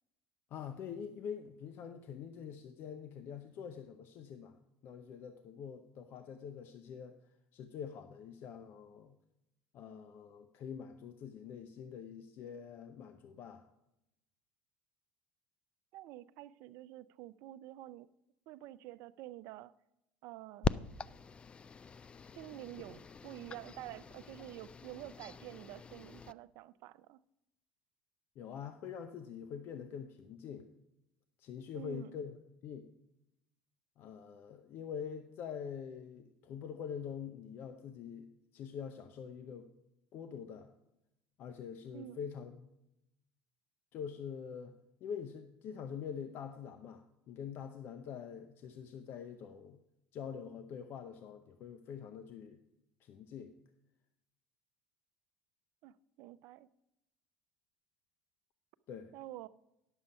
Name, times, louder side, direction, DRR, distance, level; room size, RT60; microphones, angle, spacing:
voice 1, 0.5-4.6 4.8-7.2 7.5-9.1 9.7-13.6 22.9-23.0 28.4-30.7 31.4-32.4 32.6-32.9 34.0-39.7 40.1-40.7 41.4-42.7 43.9-44.7 45.0-49.8 50.1-52.6 53.0-53.5 58.9-59.1, left 7 dB, 55° left, 0.7 m, -45 dB
voice 2, 15.9-18.1 18.5-19.7 20.2-20.9 22.3-27.2 31.7-32.2 41.9-42.2 55.8-56.7 59.1-59.5, right 15 dB, 65° right, 0.4 m, -49 dB
sound 1, 20.6-26.3, left 5 dB, 25° left, 0.3 m, -42 dB
10.0 x 7.1 x 5.3 m
supercardioid pair, 90°, 4 cm